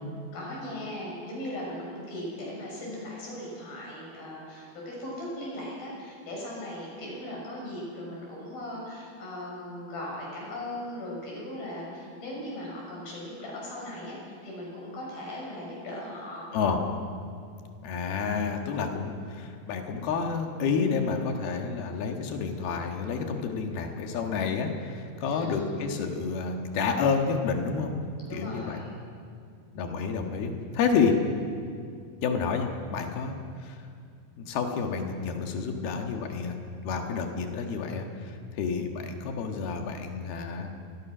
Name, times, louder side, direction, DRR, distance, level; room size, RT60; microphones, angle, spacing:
voice 1, 0.3-16.5 25.2-25.7 28.3-29.0, left 1 dB, 70° left, -3 dB, 8.2 m, -38 dB
voice 2, 17.8-27.9 28.3-28.8 29.8-31.2 32.2-33.3 33.6-33.8 34.4-36.6 36.8-40.7, left 5 dB, 85° left, 3 dB, 3.6 m, -29 dB
25.5 x 20.5 x 6.2 m, 2.3 s
omnidirectional pair, 4.3 m